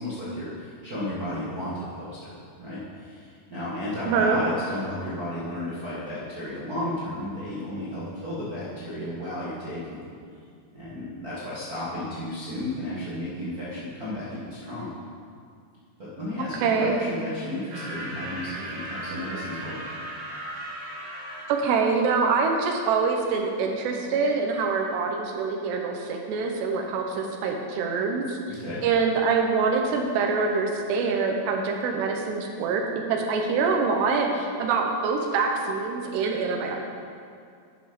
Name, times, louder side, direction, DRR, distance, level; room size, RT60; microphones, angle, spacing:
voice 1, 0.0-10.0 10.7-14.9 16.0-19.8 28.5-28.8, left 1 dB, 70° right, -10 dB, 0.8 m, -33 dB
voice 2, 4.0-4.4 16.4-16.9 21.5-28.4 28.8-32.8 33.1-36.8, right 5 dB, 90° right, 2 dB, 3.1 m, -25 dB
sound 1, 17.7-21.5, right 1 dB, 55° right, 1.5 m, -36 dB
10.5 x 7.3 x 5.1 m, 2.3 s
omnidirectional pair, 4.7 m